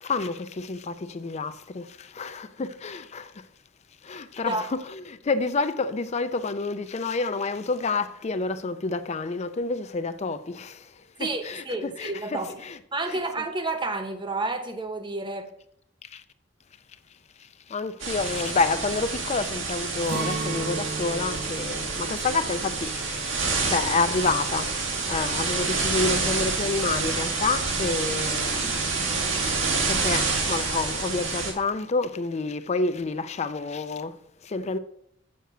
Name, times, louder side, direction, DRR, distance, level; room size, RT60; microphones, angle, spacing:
voice 1, 0.0-3.5 4.0-12.8 13.1-13.2 16.0-16.2 17.4-24.8 25.1-29.1 29.8-34.8, left 3 dB, 35° left, 0.4 m, -29 dB
voice 2, 11.2-12.6 12.9-15.5, right 2 dB, 25° right, 1.0 m, -30 dB
sound 1, 18.0-31.5, right 4 dB, 85° right, 2.2 m, -28 dB
Acoustic guitar, 20.1-26.0 26.3-26.4 26.9-27.4, right 3 dB, 55° right, 1.1 m, -37 dB
7.8 x 6.5 x 6.6 m
head